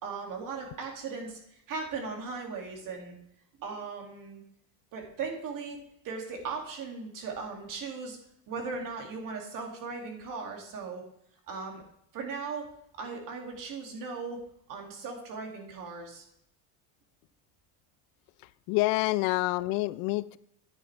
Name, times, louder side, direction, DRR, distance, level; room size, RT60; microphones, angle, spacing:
voice 1, 0.0-3.1 3.6-4.4 4.9-5.8 6.0-8.2 8.5-11.0 11.5-11.8 12.1-12.7 13.0-14.4 14.7-16.2, right 4 dB, 45° right, 2 dB, 2.5 m, -38 dB
voice 2, 18.7-20.4, left 20 dB, 90° left, 17 dB, 0.6 m, -27 dB
11.0 x 9.4 x 3.4 m, 0.74 s
cardioid pair, 150°, 44 cm